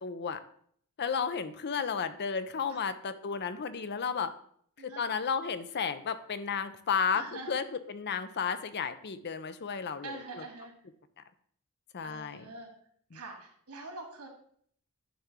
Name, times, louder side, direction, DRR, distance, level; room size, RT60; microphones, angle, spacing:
voice 1, 0.0-0.4 1.0-4.3 4.8-10.4 11.9-12.5 13.1-13.2, left 6 dB, 50° left, 11 dB, 0.6 m, -33 dB
voice 2, 7.1-7.6 10.0-10.7 12.0-12.7 13.1-14.3, right 3 dB, 90° right, 2 dB, 2.2 m, -44 dB
10.5 x 3.4 x 6.0 m, 0.62 s
head